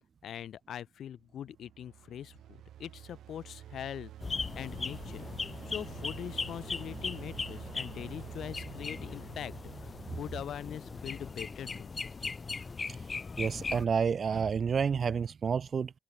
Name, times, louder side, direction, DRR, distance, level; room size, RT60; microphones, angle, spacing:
voice 1, 0.2-5.3 5.6-9.5 9.8-12.1, left 10 dB, 65° left, 1.5 m, -42 dB
sound 1, 1.3-11.5, right 11 dB, 75° right, 1.6 m, -49 dB
sound 2, 4.2-13.8, left 4 dB, 35° left, 3.8 m, -39 dB
voice 2, 13.4-15.9, right 6 dB, 45° right, 0.5 m, -29 dB
cardioid pair, 90°, 0 cm